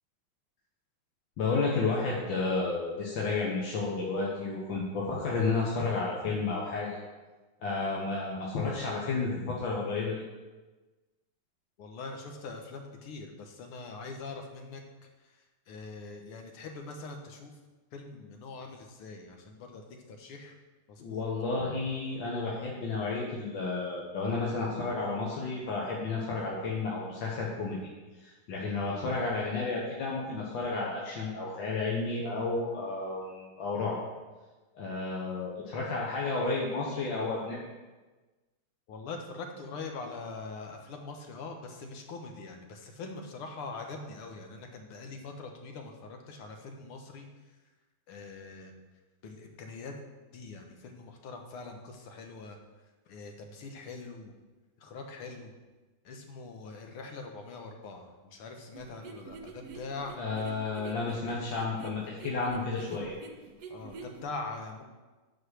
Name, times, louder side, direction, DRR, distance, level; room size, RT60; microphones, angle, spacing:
voice 1, 1.4-7.0 7.6-10.2 21.0-27.8 28.2-34.0 34.8-37.6 60.2-63.1, left 3 dB, 65° left, -3 dB, 1.8 m, -32 dB
voice 2, 11.8-14.8 15.2-15.3 15.7-17.6 17.9-19.8 20.1-20.6 20.9-21.2 38.9-47.3 48.1-48.7 49.2-49.9 50.3-52.6 53.1-54.3 54.8-55.5 56.1-60.2 61.1-61.5 63.7-64.8, left 3 dB, 85° left, 4 dB, 2.0 m, -43 dB
sound 1, 58.7-64.2, right 4 dB, 60° right, 1.1 m, -46 dB
9.0 x 4.9 x 6.2 m, 1.2 s
omnidirectional pair, 2.4 m